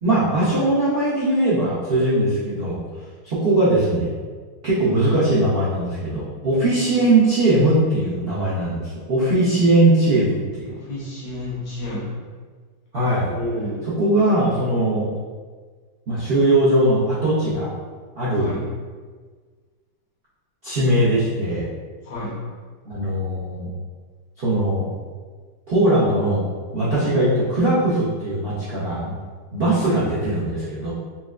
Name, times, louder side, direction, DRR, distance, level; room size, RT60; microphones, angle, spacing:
voice 1, 0.0-2.8 3.2-4.1 4.6-10.7 12.9-13.3 14.0-15.1 16.1-17.7 18.2-18.6 20.6-21.7 22.8-23.7 24.4-24.8 25.7-26.4 26.7-29.1 29.5-30.9, right 1 dB, 85° right, -10 dB, 0.5 m, -20 dB
voice 2, 10.7-12.1 13.2-13.9 18.3-18.6 22.0-22.3 29.8-30.0, left 1 dB, 80° left, -7 dB, 1.6 m, -31 dB
4.3 x 2.1 x 2.3 m, 1.5 s
omnidirectional pair, 2.0 m